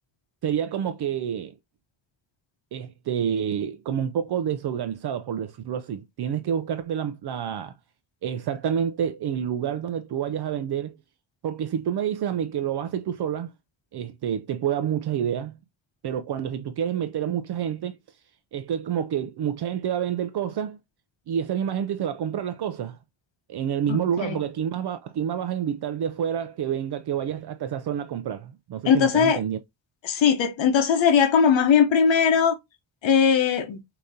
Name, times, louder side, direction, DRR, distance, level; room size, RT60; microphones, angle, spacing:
voice 1, 0.4-1.5 2.7-7.7 8.2-11.0 11.4-13.5 13.9-15.6 16.0-18.0 18.5-20.8 21.3-23.0 23.5-29.6, right 9 dB, 55° right, 0.5 m, -28 dB
voice 2, 23.9-24.4 28.8-29.4 30.0-32.6 33.0-33.8, left 7 dB, 70° left, 0.9 m, -20 dB
5.0 x 2.9 x 2.7 m
cardioid pair, 105°, 46 cm